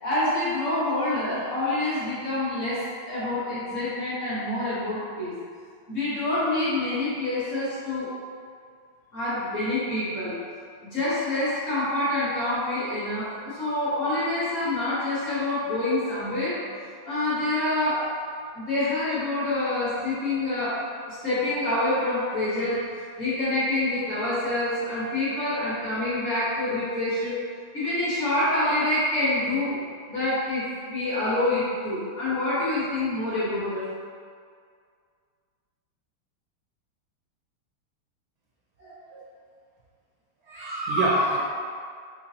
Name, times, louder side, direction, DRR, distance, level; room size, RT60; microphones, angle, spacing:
voice 1, 0.0-5.3 5.9-8.1 9.1-10.3 10.8-16.6 17.1-18.1 18.5-20.8 21.1-22.8 23.2-27.4 27.7-29.8 30.1-33.9, left 1 dB, 50° left, -10 dB, 1.1 m, -26 dB
voice 2, 38.8-39.2 40.5-41.4, right 1 dB, 70° right, -5 dB, 1.0 m, -26 dB
4.0 x 3.1 x 2.7 m, 2.1 s
omnidirectional pair, 2.2 m